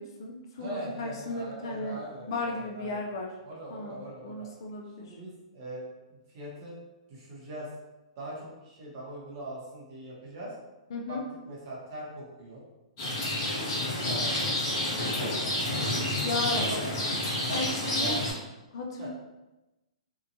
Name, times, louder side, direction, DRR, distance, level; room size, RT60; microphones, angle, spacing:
voice 1, 0.0-2.0 2.3-3.3 3.7-5.2 10.9-11.2 16.2-16.7 17.5-18.2 18.7-19.1, left 2 dB, 40° left, 0 dB, 0.3 m, -35 dB
voice 2, 0.6-3.0 3.4-4.5 5.0-5.8 6.1-6.8 7.1-7.7 8.2-10.5 11.1-11.2 11.5-12.6 13.2-15.0 16.0-16.4 16.7-16.9 17.5-18.4 19.0-19.1, right 1 dB, 30° right, -5 dB, 0.8 m, -41 dB
Rain, 13.0-18.3, left 1 dB, 25° left, 0.9 m, -29 dB
2.7 x 2.2 x 2.6 m, 1.0 s
hypercardioid pair, 175°, 4 cm